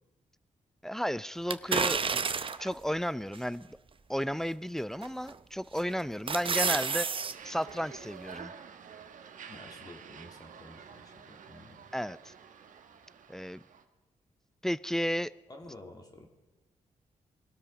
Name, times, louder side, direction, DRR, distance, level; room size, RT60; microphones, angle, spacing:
voice 1, 0.8-2.2 2.6-3.7 4.1-7.1 7.4-8.5 11.9-12.3 13.3-13.6 14.6-15.3, equal, 5° left, 0.4 m, -33 dB
sound 1, 1.5-2.7 3.3-3.4 5.0-5.4 5.8-7.3 7.7-7.8, right 5 dB, 40° right, 0.7 m, -30 dB
sound 2, 7.3-13.8, right 7 dB, 75° right, 1.2 m, -49 dB
voice 2, 9.5-11.9 15.5-16.3, left 1 dB, 30° left, 2.0 m, -51 dB
19.5 x 12.5 x 5.0 m
cardioid pair, 65°, 13 cm